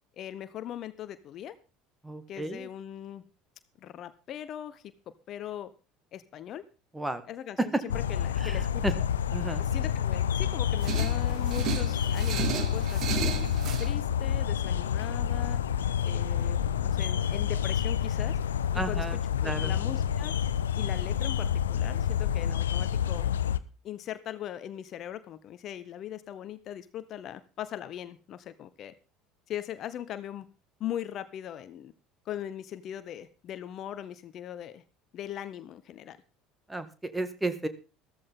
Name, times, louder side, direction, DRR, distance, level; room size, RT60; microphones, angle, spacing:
voice 1, 0.2-1.5 2.3-3.2 3.8-4.8 5.3-5.7 6.1-6.6 7.3-9.0 9.6-13.4 13.8-15.6 16.0-18.4 18.7-19.1 19.4-20.3 20.7-23.3 23.8-28.9 29.5-30.5 30.8-31.9 32.2-34.8 35.1-36.2, left 11 dB, 45° left, 14 dB, 1.0 m, -40 dB
voice 2, 2.0-2.7 6.9-7.2 7.6-7.7 8.4-8.9 9.3-9.6 18.8-19.8 36.7-37.7, right 2 dB, 10° right, 11 dB, 2.0 m, -33 dB
sound 1, 7.9-23.6, left 9 dB, 75° left, 0.7 m, -28 dB
sound 2, 10.3-17.3, right 4 dB, 75° right, 6.1 m, -58 dB
sound 3, 10.8-13.9, right 9 dB, 45° right, 1.7 m, -34 dB
14.5 x 14.0 x 3.8 m, 0.33 s
figure-of-eight pair, 65°, 0 cm